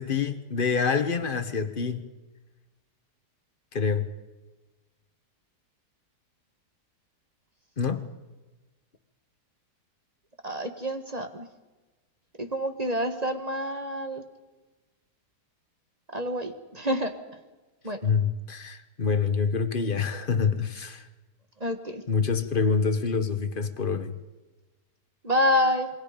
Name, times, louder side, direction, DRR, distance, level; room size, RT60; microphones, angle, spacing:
voice 1, 0.0-2.0 3.7-4.1 7.8-8.0 18.0-21.1 22.1-24.1, left 5 dB, 35° left, 1.3 m, -26 dB
voice 2, 10.4-11.5 12.4-14.2 16.1-17.1 17.8-18.0 21.6-22.0 25.2-25.9, equal, 25° right, 1.5 m, -27 dB
27.5 x 22.5 x 5.2 m
omnidirectional pair, 1.8 m